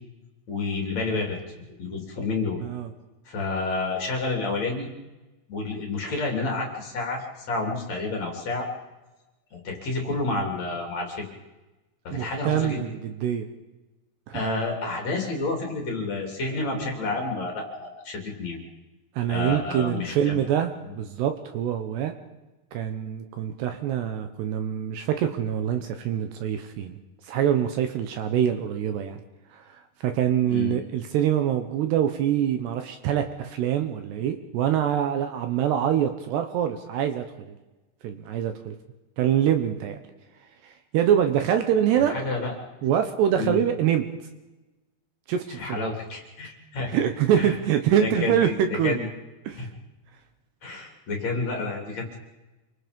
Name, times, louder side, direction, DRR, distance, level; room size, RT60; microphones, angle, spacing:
voice 1, 0.5-2.6 3.3-4.9 5.5-8.7 9.5-11.3 12.0-12.8 14.3-18.6 19.3-20.4 30.5-30.7 42.1-42.5 43.4-43.6 45.5-46.9 47.4-47.5 48.0-49.1 49.5-49.7 50.6-52.2, left 3 dB, 40° left, 1 dB, 4.1 m, -30 dB
voice 2, 12.1-13.5 14.3-14.4 19.2-22.1 22.7-27.0 27.3-29.2 29.5-37.6 38.0-38.7 39.2-40.0 40.6-42.1 42.8-44.1 45.3-45.8 46.9-49.1 49.5-49.7, right 9 dB, 70° right, 7 dB, 3.0 m, -25 dB
27.5 x 24.5 x 5.3 m, 1.1 s
omnidirectional pair, 5.4 m